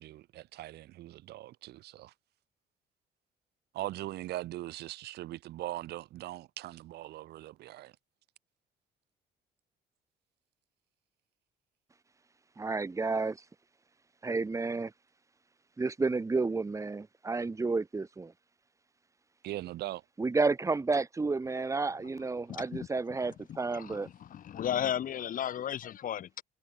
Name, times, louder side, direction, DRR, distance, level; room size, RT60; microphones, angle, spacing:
voice 1, 0.0-2.1 3.7-7.9 19.4-20.0, right 15 dB, 75° right, 4.4 m, -40 dB
voice 2, 12.6-13.4 14.2-14.9 15.8-18.3 20.2-24.1, right 3 dB, 20° right, 2.1 m, -31 dB
voice 3, 22.5-22.9 23.2-23.3 23.7-26.4, left 10 dB, 55° left, 2.6 m, -35 dB
cardioid pair, 110°, 17 cm